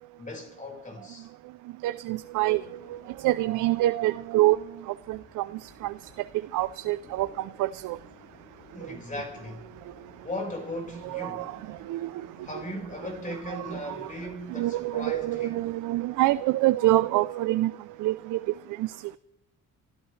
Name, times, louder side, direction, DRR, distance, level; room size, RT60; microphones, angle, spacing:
voice 1, 0.2-1.3 8.7-9.7 10.2-11.5 12.4-15.7, left 1 dB, 25° left, 4.9 m, -37 dB
voice 2, 1.8-4.6 4.9-5.9 6.5-8.0 8.8-9.0 11.0-12.3 13.5-14.1 14.5-18.9, right 16 dB, 85° right, 0.5 m, -27 dB
sound 1, 2.0-16.5, left 4 dB, 55° left, 2.6 m, -55 dB
26.5 x 13.0 x 3.2 m
cardioid pair, 90°, 30 cm